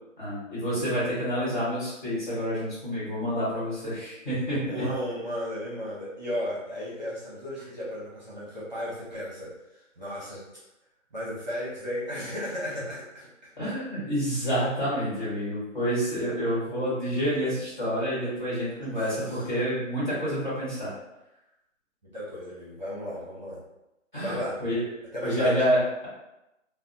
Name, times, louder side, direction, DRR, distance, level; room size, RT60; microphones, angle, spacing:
voice 1, 0.2-4.9 13.6-20.9 24.1-24.8 25.2-26.1, equal, 35° left, -10 dB, 1.3 m, -28 dB
voice 2, 4.7-10.4 11.1-13.3 18.8-18.9 22.1-23.6 24.2-24.6 25.1-25.5, equal, 35° right, -8 dB, 0.7 m, -35 dB
2.8 x 2.0 x 2.6 m, 0.92 s
hypercardioid pair, 175°, 38 cm